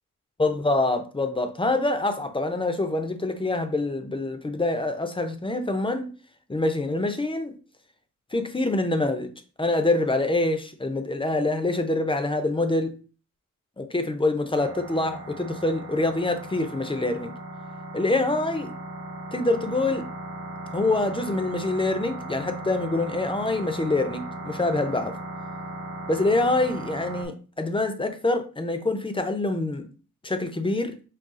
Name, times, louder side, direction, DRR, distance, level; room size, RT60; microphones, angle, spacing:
voice 1, 0.4-6.1 6.5-7.5 8.3-9.3 9.6-13.0 13.8-17.3 17.9-18.7 19.3-20.1 20.7-25.1 26.1-29.8 30.2-30.9, left 2 dB, 15° left, 0.4 m, -25 dB
sound 1, 14.6-27.3, right 1 dB, 65° right, 0.9 m, -37 dB
4.0 x 2.3 x 3.6 m
wide cardioid pair, 110°, 32 cm